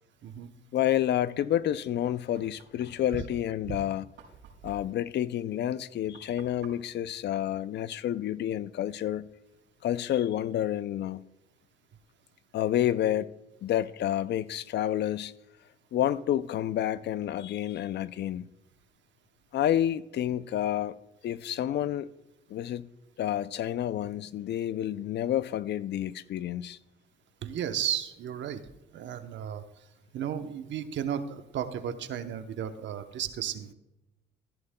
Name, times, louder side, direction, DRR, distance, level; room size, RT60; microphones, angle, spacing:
voice 1, 0.7-4.1 4.6-9.3 9.8-11.2 12.5-13.3 13.6-15.3 15.9-18.5 19.5-21.0 21.2-22.1 22.5-22.8 23.2-26.8, left 11 dB, 60° left, 0.4 m, -29 dB
Knock, 2.4-8.3, right 6 dB, 85° right, 3.8 m, -57 dB
voice 2, 27.4-28.6 28.9-29.6 30.1-33.7, right 9 dB, 70° right, 0.8 m, -34 dB
15.0 x 11.0 x 2.2 m
cardioid pair, 90°, 20 cm